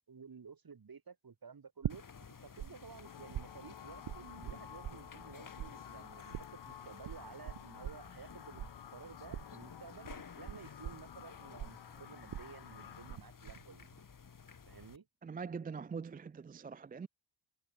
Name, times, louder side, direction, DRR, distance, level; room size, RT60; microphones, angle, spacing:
voice 1, 0.1-2.1 2.4-8.6 8.9-10.1 10.4-13.9 14.7-15.1, right 5 dB, 50° right, 4.2 m, -53 dB
sound 1, 1.8-2.7 2.9-5.3 5.6-13.2 13.5-14.0, right 11 dB, 85° right, 1.6 m, -43 dB
sound 2, 1.9-15.0, left 6 dB, 45° left, 2.0 m, -54 dB
sound 3, 3.0-13.2, left 10 dB, 60° left, 0.9 m, -53 dB
voice 2, 15.2-17.1, right 5 dB, 20° right, 0.3 m, -43 dB
cardioid pair, 75°, 47 cm